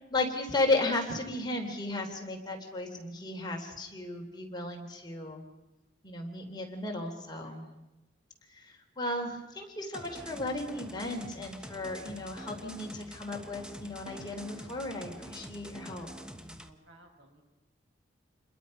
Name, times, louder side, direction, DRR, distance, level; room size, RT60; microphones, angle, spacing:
voice 1, 0.1-5.4 6.0-7.7 8.5-16.1, left 2 dB, 25° left, 1 dB, 3.5 m, -34 dB
voice 2, 7.3-7.8 16.4-17.5, right 1 dB, 85° right, 2 dB, 5.7 m, -58 dB
sound 1, 9.9-16.7, equal, 5° right, 1.2 m, -46 dB
28.0 x 21.5 x 5.4 m, 1.0 s
head